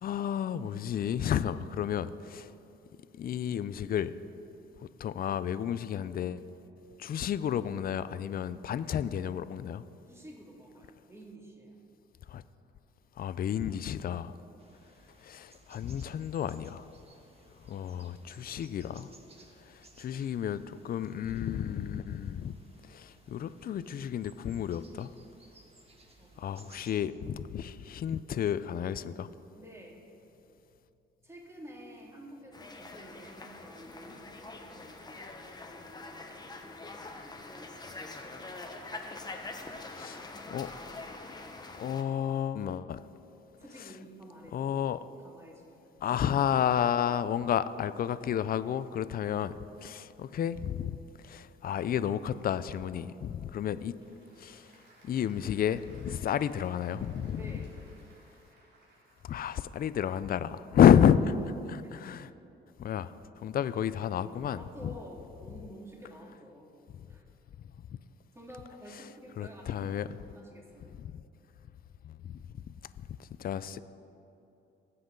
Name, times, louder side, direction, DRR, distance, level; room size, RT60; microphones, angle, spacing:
voice 1, 0.0-2.5 3.2-4.1 5.0-6.4 7.0-9.8 12.3-12.4 13.2-14.3 15.2-16.8 17.7-19.1 19.7-22.6 22.9-25.1 26.4-29.3 40.0-40.7 41.8-43.0 43.8-43.9 44.5-45.1 46.0-49.5 49.8-51.0 51.2-53.9 54.4-54.7 55.0-57.5 59.2-61.4 61.7-62.3 62.8-63.1 63.4-64.9 69.4-70.1 71.0-71.2 72.0-72.4 73.0-73.1 73.4-73.8, left 9 dB, 50° left, 0.5 m, -30 dB
voice 2, 10.1-11.8 26.2-26.5 29.6-30.0 31.2-37.8 43.5-44.6 45.2-46.3 47.1-47.2 57.4-57.7 64.5-66.7 67.1-67.3 68.3-70.9, equal, 15° right, 2.4 m, -50 dB
sound 1, 14.6-27.2, right 2 dB, 30° right, 1.5 m, -60 dB
sound 2, 32.5-42.0, left 3 dB, 20° left, 1.1 m, -44 dB
Applause / Crowd, 53.7-59.8, right 2 dB, 55° right, 3.0 m, -61 dB
20.0 x 7.7 x 3.9 m
cardioid pair, 90°, 20 cm